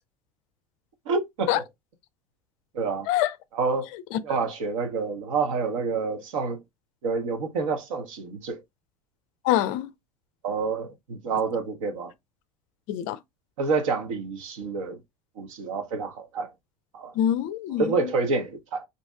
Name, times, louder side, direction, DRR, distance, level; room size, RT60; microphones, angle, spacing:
voice 1, 1.1-1.7 2.7-3.1 3.5-3.9 4.2-6.6 7.0-8.6 10.4-12.1 13.6-15.0 15.4-16.5 16.9-17.1 17.8-18.9, right 4 dB, 60° right, 1.0 m, -28 dB
voice 2, 9.4-9.9 12.9-13.2 17.2-18.1, left 12 dB, 45° left, 0.4 m, -25 dB
5.1 x 2.7 x 2.3 m
figure-of-eight pair, 70°, 19 cm